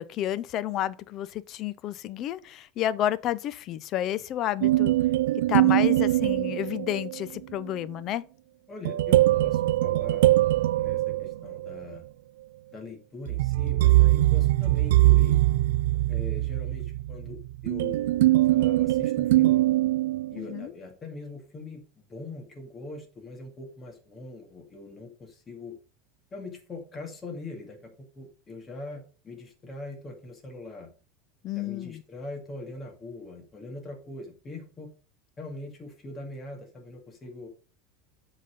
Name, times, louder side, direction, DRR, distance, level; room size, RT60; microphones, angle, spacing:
voice 1, 0.0-4.9 5.5-8.2 20.3-20.7 31.4-32.0, left 12 dB, 40° left, 0.5 m, -30 dB
sound 1, 4.6-7.2 8.8-11.8 13.3-20.6, right 16 dB, 85° right, 0.4 m, -22 dB
voice 2, 8.7-10.3 10.7-12.0 12.7-15.4 16.1-19.6 20.3-25.8 26.3-30.9 31.6-34.9 35.4-37.5, left 2 dB, 20° left, 2.1 m, -42 dB
7.6 x 4.1 x 5.2 m
supercardioid pair, 140°, 0 cm